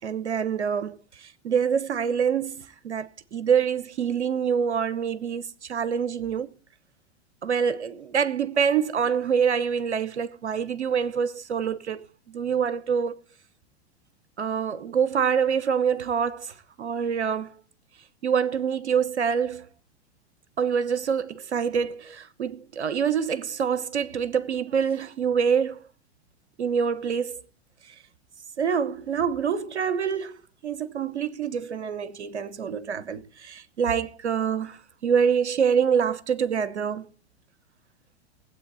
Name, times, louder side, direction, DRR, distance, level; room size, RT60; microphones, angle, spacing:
voice 1, 0.0-6.5 7.4-13.2 14.4-17.6 18.2-19.7 20.6-25.9 26.6-27.4 28.6-37.1, right 7 dB, 90° right, 1.0 m, -26 dB
19.5 x 8.4 x 4.0 m
hypercardioid pair, 100°, 33 cm